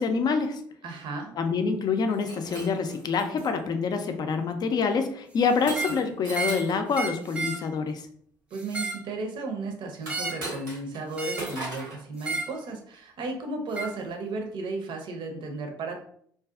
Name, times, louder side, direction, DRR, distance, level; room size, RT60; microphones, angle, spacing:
voice 1, 0.0-0.6 1.4-8.1, left 5 dB, 45° left, 7 dB, 0.5 m, -26 dB
voice 2, 0.8-1.3 8.5-16.0, right 3 dB, 55° right, 3 dB, 0.6 m, -34 dB
Shatter, 2.1-3.5 4.1-4.5 5.7-6.8 10.0-11.0 11.4-12.0, right 2 dB, 90° right, 0.9 m, -38 dB
sound 1, 5.6-6.0 6.3-6.6 6.9-7.6 8.5-9.1 10.1-10.5 11.2-11.5 12.2-12.5 13.7-13.9, right 3 dB, 10° right, 0.5 m, -32 dB
2.5 x 2.3 x 2.3 m, 0.63 s
hypercardioid pair, 55°, 10 cm